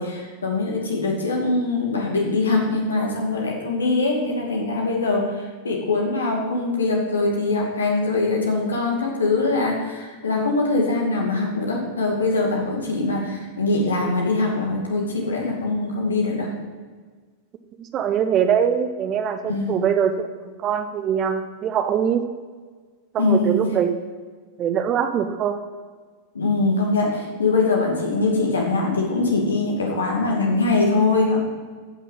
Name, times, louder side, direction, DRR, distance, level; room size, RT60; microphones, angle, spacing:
voice 1, 0.0-16.5 19.5-19.8 23.2-23.6 26.3-31.4, left 3 dB, 70° left, 0 dB, 2.4 m, -22 dB
voice 2, 17.8-20.3 20.6-22.2 23.1-23.9 24.6-25.6, right 8 dB, 30° right, 8 dB, 0.9 m, -22 dB
15.0 x 6.1 x 5.8 m, 1.5 s
figure-of-eight pair, 90°, 0 cm